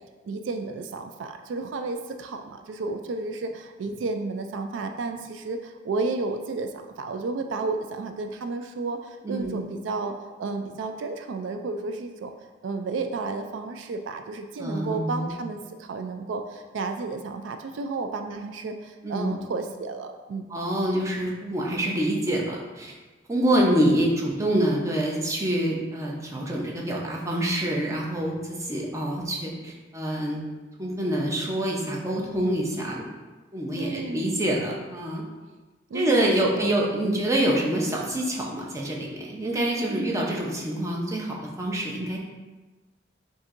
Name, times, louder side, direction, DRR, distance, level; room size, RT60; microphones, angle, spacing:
voice 1, 0.2-12.3 12.6-20.5 23.4-23.6 33.8-34.4 35.9-36.7 39.9-40.2, right 3 dB, 85° right, 6 dB, 0.3 m, -32 dB
voice 2, 9.2-9.6 14.6-15.3 19.0-19.4 20.5-22.9 23.3-30.4 30.8-33.0 33.5-35.2 35.9-42.2, right 1 dB, 15° right, -2 dB, 0.6 m, -26 dB
7.1 x 2.7 x 2.5 m, 1.2 s
head